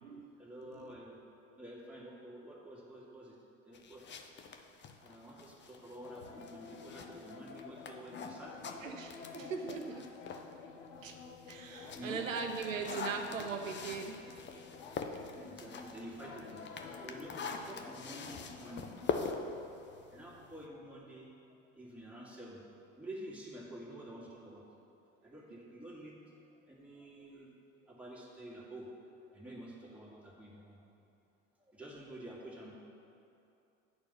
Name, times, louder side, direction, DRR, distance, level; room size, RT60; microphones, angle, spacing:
voice 1, 0.4-1.2 1.6-3.3 3.6-4.0 5.0-8.8 10.9-11.2 11.9-12.2 14.8-14.9 15.4-16.6 17.0-18.9 20.1-21.3 21.8-22.6 22.9-24.6 25.2-27.5 27.8-28.9 29.3-30.8 31.6-32.7, right 1 dB, 5° right, -5 dB, 2.0 m, -49 dB
sound 1, 3.7-10.5 10.9-20.7, left 5 dB, 30° left, 0.6 m, -44 dB
sound 2, 6.0-19.3, left 4 dB, 75° left, 0.7 m, -51 dB
voice 2, 8.8-10.0 11.0-11.1 11.5-14.2 17.5-17.6, right 5 dB, 85° right, 4 dB, 0.6 m, -39 dB
9.5 x 4.4 x 5.6 m, 2.7 s
figure-of-eight pair, 65°, 38 cm